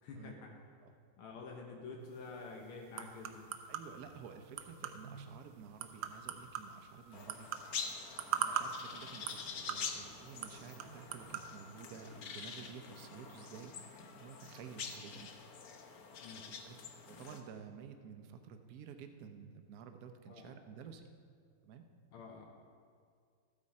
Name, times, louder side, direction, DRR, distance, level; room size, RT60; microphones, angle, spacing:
voice 1, 0.0-0.6 1.2-3.5 16.2-16.5 20.3-20.6 22.1-22.5, left 3 dB, 85° left, 0 dB, 2.0 m, -48 dB
sound 1, 2.1-11.5, right 9 dB, 80° right, 1.5 m, -43 dB
voice 2, 3.7-7.5 8.3-15.3 16.5-16.8 17.1-21.0 21.6-21.8, right 6 dB, 60° right, 7 dB, 1.0 m, -52 dB
sound 2, 7.1-17.4, left 5 dB, 55° left, 1.1 m, -46 dB
13.5 x 8.7 x 4.2 m, 2.2 s
omnidirectional pair, 2.3 m